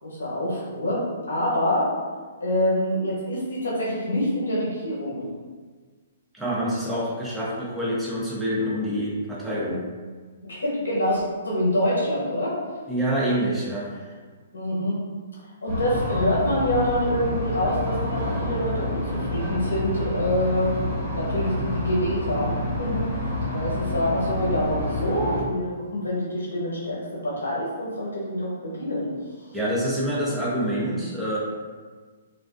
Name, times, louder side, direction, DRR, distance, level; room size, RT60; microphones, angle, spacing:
voice 1, 0.0-1.9 2.4-5.2 10.5-12.6 14.5-15.0 15.6-20.7 21.1-23.1 23.5-29.1, left 1 dB, 75° left, -6 dB, 0.9 m, -26 dB
voice 2, 6.3-9.9 12.9-14.1 29.5-31.4, equal, 5° right, -7 dB, 0.6 m, -26 dB
sound 1, 15.7-25.4, left 1 dB, 60° right, 1.4 m, -28 dB
2.4 x 2.3 x 2.3 m, 1.5 s
hypercardioid pair, 130°, 0 cm